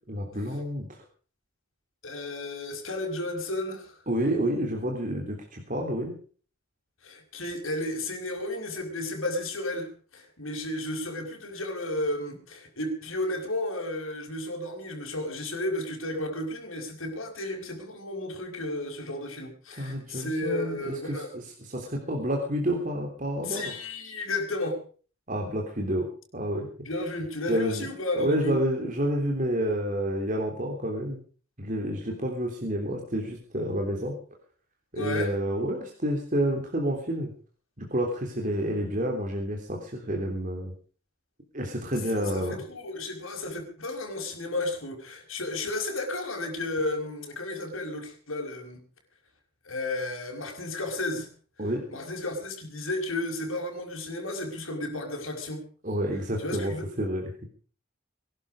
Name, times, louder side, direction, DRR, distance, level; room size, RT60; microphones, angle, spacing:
voice 1, 0.1-0.9 4.1-6.2 19.8-21.4 21.7-23.7 25.3-26.1 26.3-26.7 27.5-27.9 28.2-31.2 31.6-34.1 34.9-37.3 37.8-40.7 41.5-42.6 51.6-51.9 55.8-57.5, equal, 40° right, 1 dB, 3.4 m, -29 dB
voice 2, 2.0-4.0 7.0-21.3 23.4-24.8 26.8-28.6 35.0-35.3 42.1-48.8 49.7-51.3 51.9-55.6 56.4-56.8, left 1 dB, 80° left, 2 dB, 5.6 m, -33 dB
22.0 x 12.0 x 5.0 m, 0.41 s
head